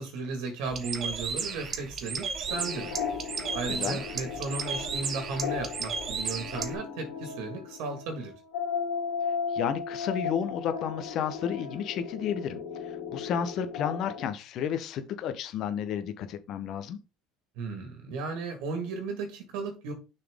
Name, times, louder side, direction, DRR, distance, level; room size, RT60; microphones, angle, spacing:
voice 1, 0.0-3.0 3.5-8.3 17.6-19.9, right 4 dB, 75° right, 1.7 m, -35 dB
Bird, 0.7-6.7, right 5 dB, 35° right, 1.2 m, -34 dB
sound 1, 2.5-14.2, left 6 dB, 85° left, 2.0 m, -36 dB
voice 2, 3.7-4.0 9.5-17.0, left 8 dB, 50° left, 0.9 m, -32 dB
6.4 x 4.2 x 3.6 m
cardioid pair, 130°, 0 cm